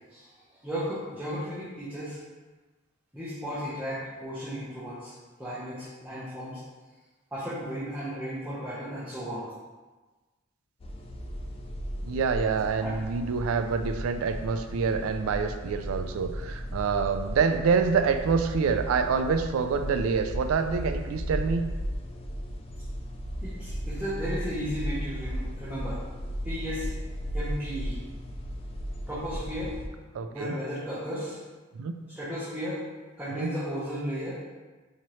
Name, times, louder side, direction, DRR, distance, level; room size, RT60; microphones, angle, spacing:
voice 1, 0.6-2.2 3.1-6.6 7.3-9.5 12.8-12.9 23.4-26.0 26.4-26.9 27.3-28.0 29.1-29.8 30.3-31.4 32.1-32.9 33.2-34.5, equal, 10° right, -10 dB, 0.7 m, -34 dB
sound 1, 10.8-29.9, equal, 30° left, 0.3 m, -35 dB
voice 2, 12.0-21.7 30.1-30.5 31.8-32.0 33.3-33.5, right 5 dB, 85° right, 8 dB, 0.3 m, -26 dB
4.2 x 2.9 x 3.1 m, 1.3 s
head